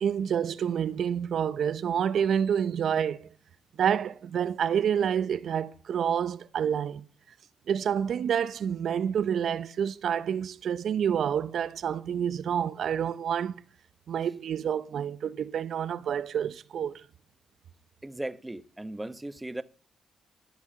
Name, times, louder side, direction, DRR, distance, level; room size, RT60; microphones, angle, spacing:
voice 1, 0.0-3.3 3.8-7.0 7.7-13.6 14.1-17.0, right 8 dB, 70° right, 0.6 m, -28 dB
voice 2, 18.0-19.6, right 1 dB, 15° right, 1.0 m, -37 dB
13.5 x 6.1 x 6.8 m
supercardioid pair, 45°, 0 cm